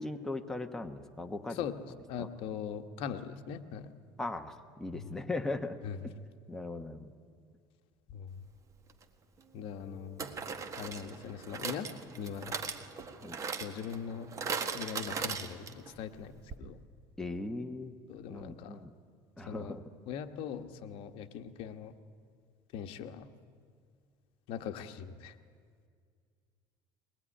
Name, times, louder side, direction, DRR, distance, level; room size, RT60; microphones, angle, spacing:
voice 1, 0.0-1.6 2.2-2.3 4.2-5.8 6.5-7.1 13.2-13.4 17.2-17.9 18.3-18.9 19.4-19.8, left 2 dB, 5° left, 5 dB, 1.1 m, -38 dB
voice 2, 1.5-3.9 4.9-5.1 5.8-6.0 8.1-8.3 9.5-10.3 10.8-11.9 12.2-12.6 13.6-14.3 14.7-16.8 18.1-18.8 19.5-19.8 20.1-21.9 22.7-23.3 24.5-25.3, left 8 dB, 65° left, 8 dB, 1.3 m, -41 dB
sound 1, 8.9-9.0 10.2-15.9 16.2-16.3 16.5-16.6, right 5 dB, 30° right, 1.6 m, -39 dB
22.0 x 20.0 x 10.0 m, 2.1 s
cardioid pair, 130°, 10 cm